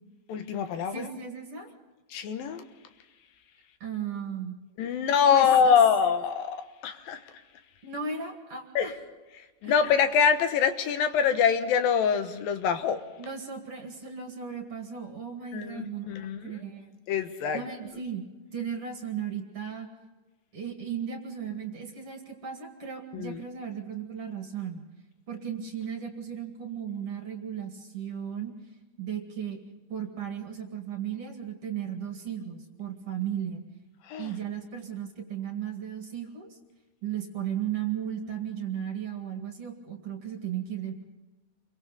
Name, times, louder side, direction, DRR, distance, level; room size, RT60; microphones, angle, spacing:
voice 1, 0.3-1.0 2.1-2.7 4.8-7.2 8.8-8.9 9.6-13.0 15.5-16.5 17.1-17.6 23.1-23.4 34.1-34.3, left 7 dB, 80° left, 9 dB, 3.0 m, -24 dB
voice 2, 0.9-1.7 3.8-4.6 5.3-5.8 7.8-8.9 9.6-9.7 13.2-16.9 17.5-18.2 18.5-19.9 20.5-24.8 25.3-28.5 29.0-29.6 29.9-33.6 34.2-36.6 37.0-41.0, right 8 dB, 45° right, 4 dB, 2.8 m, -36 dB
28.0 x 23.5 x 4.1 m, 1.2 s
omnidirectional pair, 4.0 m